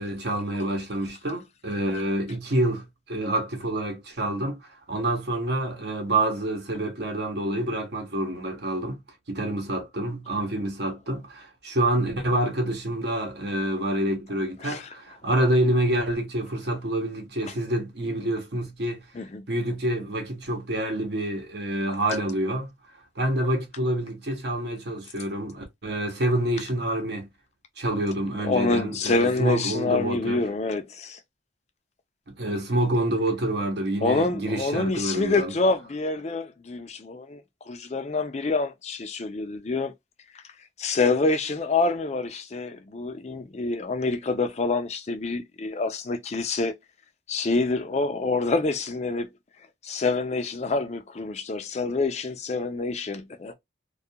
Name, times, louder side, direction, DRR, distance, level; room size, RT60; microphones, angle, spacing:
voice 1, 0.0-9.0 9.3-19.1 19.5-22.7 23.2-27.3 27.8-30.4 32.3-35.5, right 1 dB, 55° right, 0.8 m, -27 dB
voice 2, 28.4-31.2 34.0-39.9 40.3-40.4 40.8-46.7 47.3-49.3 49.8-53.5, left 3 dB, 35° left, 0.4 m, -27 dB
2.3 x 2.2 x 2.7 m
head